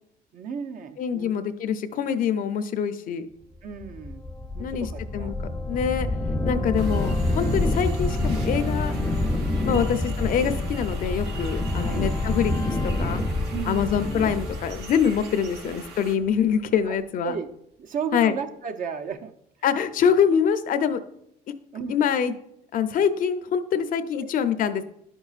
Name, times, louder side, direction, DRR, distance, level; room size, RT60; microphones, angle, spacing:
voice 1, 0.3-1.5 3.6-4.3 4.5-5.3 6.5-7.1 9.6-10.0 11.7-12.1 13.5-14.0 16.9-17.5 17.8-19.4 21.7-22.1 24.2-24.3, right 6 dB, 50° right, 6 dB, 0.6 m, -35 dB
voice 2, 1.0-3.3 4.6-4.9 5.1-5.4 5.7-6.1 6.4-8.9 9.6-13.2 13.7-17.3 18.1-18.3 19.6-21.0 21.5-21.6 21.9-22.3 22.7-24.8, left 7 dB, 55° left, 10 dB, 0.6 m, -25 dB
sound 1, 3.8-15.9, left 2 dB, 10° left, 0.6 m, -27 dB
sound 2, 6.8-16.2, right 4 dB, 75° right, 1.0 m, -43 dB
11.0 x 5.4 x 2.4 m, 0.75 s
cardioid pair, 110°, 17 cm